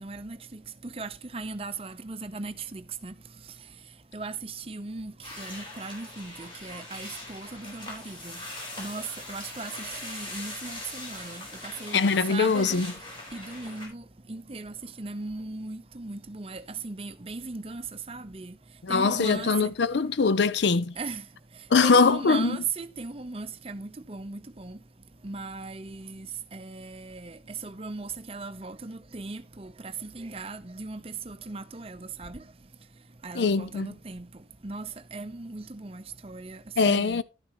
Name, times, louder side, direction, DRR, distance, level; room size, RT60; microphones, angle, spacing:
voice 1, 0.0-3.1 4.1-8.4 8.8-12.0 12.3-12.8 13.3-14.0 14.3-17.8 18.1-18.5 18.9-19.7 21.0-21.2 21.8-24.8 25.2-26.3 26.5-32.4 33.2-34.3 34.6-36.6 36.9-37.2, right 3 dB, 30° right, 0.7 m, -38 dB
sound 1, 5.2-13.9, left 1 dB, 25° left, 4.6 m, -41 dB
voice 2, 11.9-12.9 18.8-20.9 21.7-22.5 33.4-33.9 36.8-37.2, left 4 dB, 75° left, 0.5 m, -22 dB
11.5 x 9.4 x 3.0 m
head